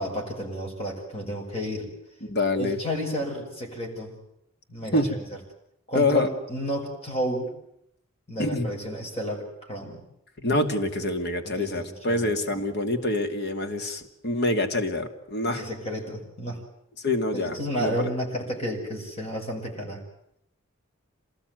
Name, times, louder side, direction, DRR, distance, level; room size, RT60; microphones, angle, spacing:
voice 1, 0.0-1.9 2.6-4.2 4.7-5.2 5.9-7.5 8.3-10.0 11.4-12.4 15.4-16.6 17.3-20.0, equal, 30° left, 0 dB, 6.2 m, -32 dB
voice 2, 2.2-2.8 4.9-5.2 5.9-6.3 8.4-8.7 10.4-15.7 17.0-18.1, left 2 dB, 55° left, 7 dB, 2.6 m, -26 dB
27.0 x 19.5 x 9.5 m, 0.76 s
head